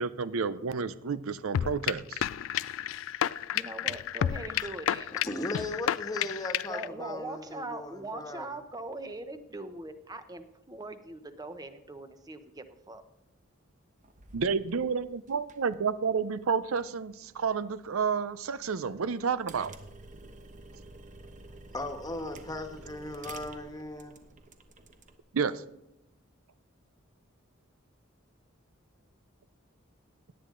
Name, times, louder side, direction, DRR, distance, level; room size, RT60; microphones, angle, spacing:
voice 1, 0.0-2.2 14.3-19.7 25.3-25.6, right 5 dB, 90° right, 15 dB, 0.6 m, -30 dB
sound 1, 1.5-6.9, left 10 dB, 70° left, 0.3 m, -31 dB
voice 2, 3.5-5.2 6.6-13.0, right 2 dB, 20° right, 9 dB, 0.8 m, -41 dB
voice 3, 5.1-8.6 21.7-24.1, left 1 dB, 20° left, 6 dB, 1.4 m, -37 dB
sound 2, 14.0-25.2, right 2 dB, 40° right, 1.1 m, -51 dB
17.5 x 10.0 x 3.8 m, 0.88 s
head